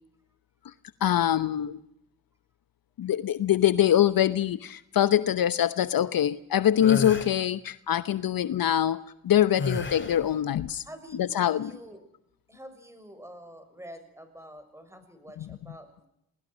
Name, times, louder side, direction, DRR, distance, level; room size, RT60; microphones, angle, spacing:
voice 1, 1.0-1.8 3.0-10.8 11.3-11.7, left 11 dB, 60° left, 14 dB, 0.9 m, -24 dB
sound 1, 6.8-7.3 9.6-10.3, left 3 dB, 30° left, 3.1 m, -31 dB
voice 2, 9.5-9.8 10.7-11.2 11.4-12.0 12.5-16.1, equal, 5° right, 8 dB, 6.8 m, -47 dB
28.5 x 19.5 x 6.3 m, 0.80 s
supercardioid pair, 60°, 39 cm